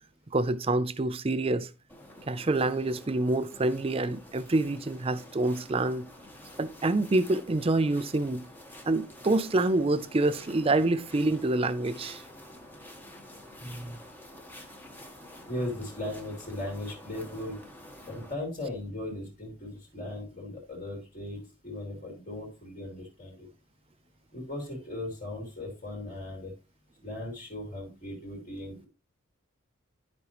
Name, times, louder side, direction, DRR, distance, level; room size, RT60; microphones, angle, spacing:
voice 1, 0.3-1.7 2.3-6.1 6.6-8.5 8.9-12.2, right 2 dB, 25° right, 0.4 m, -27 dB
sound 1, 1.9-18.3, left 1 dB, 10° left, 1.3 m, -49 dB
voice 2, 13.6-14.0 15.5-17.6 18.1-23.5 24.3-26.5 27.0-28.9, left 1 dB, 35° left, 2.8 m, -38 dB
12.5 x 5.2 x 3.0 m
head